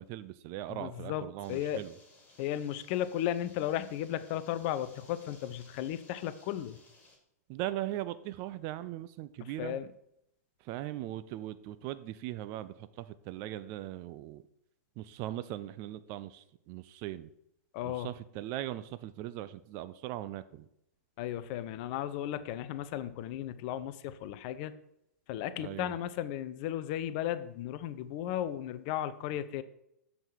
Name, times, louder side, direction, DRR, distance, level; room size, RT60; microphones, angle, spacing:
voice 1, 0.0-1.9 7.5-9.8 10.6-14.4 15.0-17.3 17.8-20.7 25.6-25.9, right 14 dB, 30° right, 14 dB, 0.3 m, -39 dB
voice 2, 0.7-1.8 2.4-6.8 9.4-9.9 17.7-18.1 21.2-24.7 25.3-29.6, left 11 dB, 35° left, 13 dB, 0.5 m, -35 dB
sound 1, 1.4-7.2, left 2 dB, 15° left, 1.8 m, -60 dB
7.1 x 5.3 x 4.5 m, 0.77 s
figure-of-eight pair, 105°, 9 cm